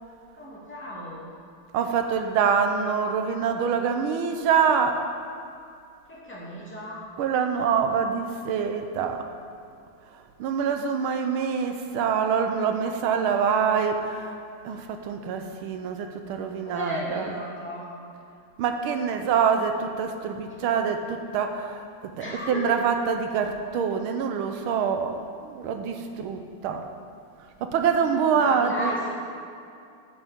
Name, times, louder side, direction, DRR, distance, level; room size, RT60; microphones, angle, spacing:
voice 1, 0.4-1.3 6.1-7.1 11.4-11.5 16.6-17.9 20.5-20.7 22.2-22.8 28.3-29.1, left 1 dB, 5° left, -7 dB, 2.1 m, -35 dB
voice 2, 1.7-5.1 7.2-9.3 10.4-14.4 14.6-17.4 18.6-26.9 27.6-28.9, right 6 dB, 80° right, 6 dB, 1.6 m, -25 dB
11.0 x 6.3 x 5.2 m, 2.5 s
omnidirectional pair, 2.3 m